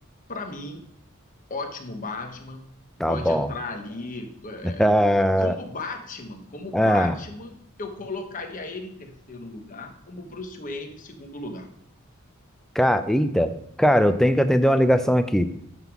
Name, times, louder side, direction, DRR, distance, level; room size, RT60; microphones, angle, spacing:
voice 1, 0.3-0.8 1.5-2.7 3.0-4.9 5.4-11.7, left 3 dB, 40° left, 4 dB, 1.1 m, -36 dB
voice 2, 3.0-3.5 4.8-5.5 6.7-7.1 12.8-13.5 13.8-15.5, equal, ahead, 9 dB, 0.5 m, -20 dB
9.5 x 3.6 x 6.0 m, 0.72 s
head